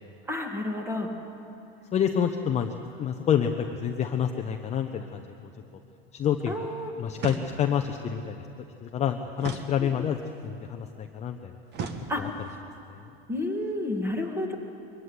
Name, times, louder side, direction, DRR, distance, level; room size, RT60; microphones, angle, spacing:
voice 1, 0.3-1.1 6.5-6.9 9.8-9.9 12.1-12.2 13.3-14.6, left 1 dB, 10° right, 3 dB, 2.2 m, -30 dB
voice 2, 1.9-5.2 6.1-6.7 7.0-8.4 8.8-10.2 10.4-11.5 12.2-12.3 12.9-13.0, left 8 dB, 20° left, 4 dB, 0.8 m, -28 dB
sound 1, 7.2-7.9 9.4-10.3 11.7-12.6, right 6 dB, 35° right, 1.5 m, -38 dB
22.5 x 14.5 x 9.7 m, 2.8 s
supercardioid pair, 140°, 32 cm